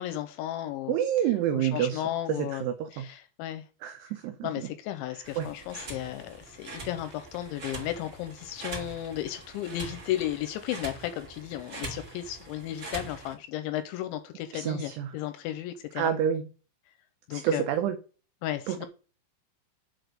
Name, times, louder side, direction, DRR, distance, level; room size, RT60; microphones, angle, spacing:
voice 1, 0.0-1.0 1.5-2.7 2.9-3.6 4.4-16.1 17.3-17.7 18.4-18.9, left 13 dB, 85° left, 2.8 m, -34 dB
voice 2, 0.9-2.0 2.3-3.1 3.8-4.7 5.4-5.5 14.5-15.1 16.0-16.5 17.3-18.0 18.7-18.9, right 10 dB, 90° right, 2.3 m, -28 dB
sound 1, 5.2-13.3, right 3 dB, 30° right, 2.8 m, -43 dB
8.2 x 4.4 x 5.1 m
omnidirectional pair, 5.7 m